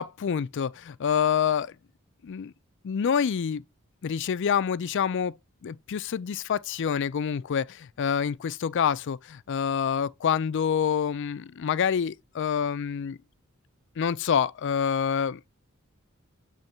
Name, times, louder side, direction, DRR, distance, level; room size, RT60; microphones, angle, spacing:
voice 1, 0.0-1.7 2.2-2.5 2.8-3.6 4.0-5.3 5.6-13.2 14.0-15.5, left 7 dB, 60° left, 0.4 m, -27 dB
7.8 x 3.2 x 4.3 m
head